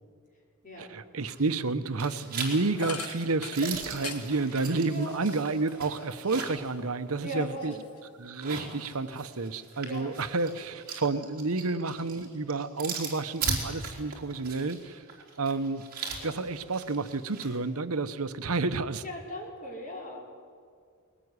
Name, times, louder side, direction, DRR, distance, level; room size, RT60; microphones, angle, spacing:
voice 1, 0.8-7.7 8.2-15.0 15.4-15.8 16.2-19.0, right 3 dB, 75° right, 11 dB, 0.9 m, -30 dB
sound 1, 1.3-1.7 2.0-6.7 7.1-7.2 8.2-17.5, right 4 dB, 40° right, 4.0 m, -38 dB
sound 2, 2.8-6.7 7.1-8.3, left 4 dB, 85° left, 1.9 m, -43 dB
voice 2, 4.8-5.2 7.2-7.8 9.8-10.1 19.0-20.2, equal, 35° left, -1 dB, 4.9 m, -38 dB
21.0 x 18.5 x 9.7 m, 2.2 s
head